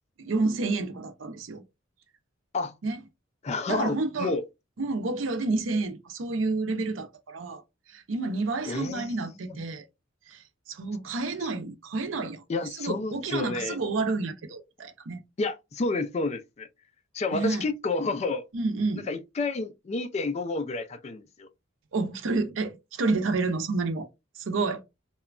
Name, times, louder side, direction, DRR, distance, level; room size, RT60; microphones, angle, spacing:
voice 1, 0.2-1.6 2.8-3.0 3.7-4.3 4.8-7.6 7.9-9.8 10.3-10.4 10.7-12.4 12.8-15.2 17.3-17.6 18.5-19.1 21.9-24.1 24.4-24.8, right 3 dB, 85° right, 0.6 m, -29 dB
voice 2, 3.4-4.4 8.7-9.6 12.5-13.8 15.4-16.7 17.1-18.4 19.1-21.5, left 3 dB, 35° left, 0.4 m, -30 dB
3.0 x 2.2 x 2.4 m
head